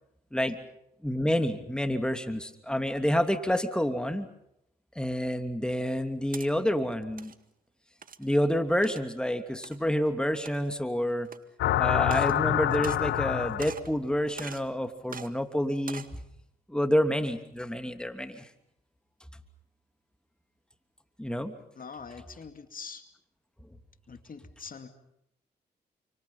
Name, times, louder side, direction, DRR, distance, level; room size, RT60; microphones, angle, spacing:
voice 1, 1.0-4.3 5.0-7.3 8.2-11.3 11.8-16.1 16.7-18.5 21.2-21.5, equal, 5° left, 8 dB, 2.9 m, -28 dB
sound 1, 6.0-6.5 7.0-7.4 8.0-8.3 8.8-9.1 9.6-9.8 10.3-10.8 11.3-11.4 12.0-12.4 12.7-13.3 13.6-13.9 14.4-14.7 15.1-15.3 15.8-16.2, right 6 dB, 50° right, 1.8 m, -42 dB
sound 2, 11.6-14.0, left 13 dB, 80° left, 0.9 m, -26 dB
voice 2, 21.7-23.0 24.1-24.9, left 5 dB, 50° left, 8 dB, 2.5 m, -44 dB
29.0 x 25.5 x 5.7 m, 0.78 s
supercardioid pair, 50°, 19 cm